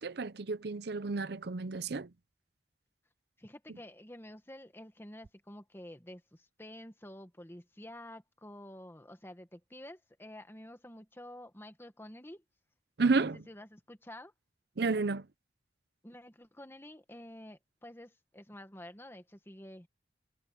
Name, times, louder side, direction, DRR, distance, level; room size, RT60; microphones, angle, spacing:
voice 1, 0.0-2.1 13.0-13.4 14.8-15.3, right 4 dB, 65° right, 0.7 m, -31 dB
voice 2, 3.4-12.4 13.1-14.3 16.0-19.9, left 1 dB, 15° left, 1.7 m, -49 dB
head